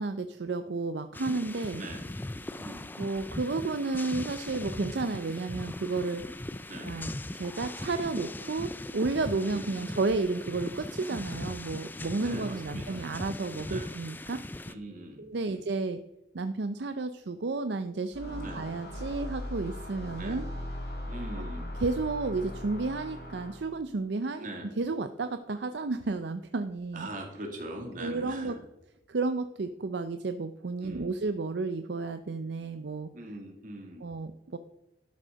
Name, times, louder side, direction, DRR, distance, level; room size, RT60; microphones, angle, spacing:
voice 1, 0.0-1.8 3.0-6.2 6.8-14.4 15.2-16.0 16.3-20.5 21.4-21.5 21.8-24.5 24.8-27.1 28.0-28.6 29.1-33.1 34.0-34.6, right 3 dB, 65° right, 9 dB, 0.5 m, -32 dB
sound 1, 1.1-14.7, left 1 dB, 10° left, 0.3 m, -39 dB
voice 2, 2.6-2.9 6.7-7.0 9.5-9.8 12.2-13.1 13.7-13.9 14.7-15.6 18.4-18.7 20.2-20.4 21.1-21.7 24.4-24.7 26.9-28.6 30.8-31.1 33.1-34.1, right 1 dB, 45° right, 1 dB, 2.4 m, -41 dB
sound 2, 18.1-23.8, left 1 dB, 60° left, 2.3 m, -39 dB
12.0 x 6.3 x 5.1 m, 0.94 s
head